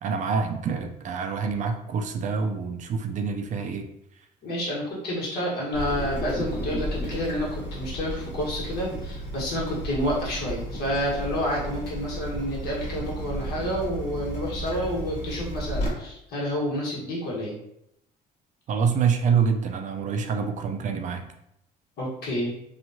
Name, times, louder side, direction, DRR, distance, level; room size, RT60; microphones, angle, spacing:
voice 1, 0.0-3.9 18.7-21.3, right 6 dB, 45° right, 6 dB, 0.4 m, -26 dB
voice 2, 4.4-17.5 22.0-22.5, equal, 70° left, -5 dB, 1.3 m, -29 dB
Water tap faucet / Drip, 5.7-15.9, right 1 dB, 40° left, 1.2 m, -33 dB
2.9 x 2.3 x 2.6 m, 0.79 s
cardioid pair, 110°, 17 cm